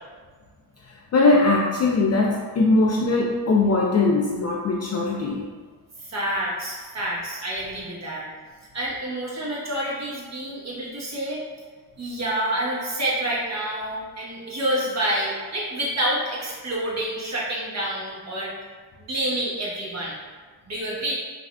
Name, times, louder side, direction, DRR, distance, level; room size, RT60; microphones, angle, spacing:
voice 1, 1.1-5.5, left 3 dB, 35° left, -2 dB, 0.4 m, -20 dB
voice 2, 6.1-8.2 8.7-11.4 12.0-18.5 19.0-20.2 20.7-21.1, right 1 dB, 35° right, -5 dB, 1.1 m, -28 dB
3.4 x 2.4 x 2.2 m, 1.4 s
cardioid pair, 70°, 47 cm